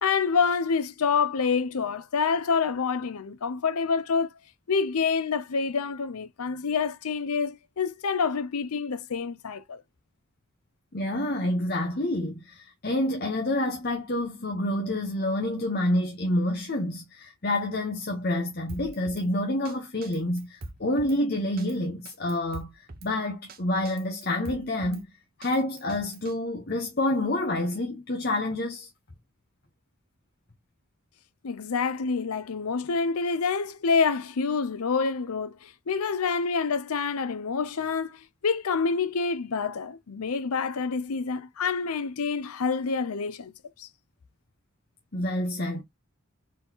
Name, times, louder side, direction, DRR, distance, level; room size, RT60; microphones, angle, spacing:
voice 1, 0.0-4.3 4.7-9.8 31.4-43.5 43.8-43.9, left 5 dB, 90° left, 0.6 m, -27 dB
voice 2, 10.9-25.1 25.4-28.9 45.1-45.8, left 1 dB, 45° left, 1.0 m, -28 dB
Drum kit, 18.7-19.3 19.7-19.8 20.0-21.2 21.6-21.7 22.1-23.1 23.5-23.6 23.9-25.0 25.4-26.3, right 2 dB, 40° right, 0.8 m, -42 dB
4.3 x 3.8 x 2.9 m
head